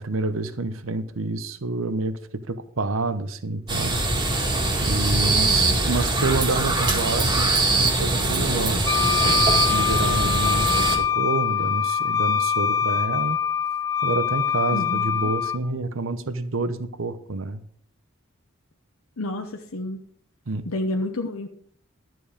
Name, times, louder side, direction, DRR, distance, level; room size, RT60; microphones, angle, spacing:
voice 1, 0.0-4.0 4.8-13.4 14.0-17.6 20.5-20.7, right 3 dB, 65° right, 12 dB, 0.9 m, -28 dB
sound 1, 3.7-11.0, right 2 dB, 20° right, 2.0 m, -22 dB
voice 2, 5.5-5.8 14.7-15.3 19.2-20.0 20.7-21.5, left 1 dB, 75° left, 3 dB, 0.9 m, -30 dB
Wind instrument woodwind instrument, 8.9-15.6, left 7 dB, 15° left, 0.5 m, -24 dB
12.0 x 7.7 x 5.1 m, 0.62 s
head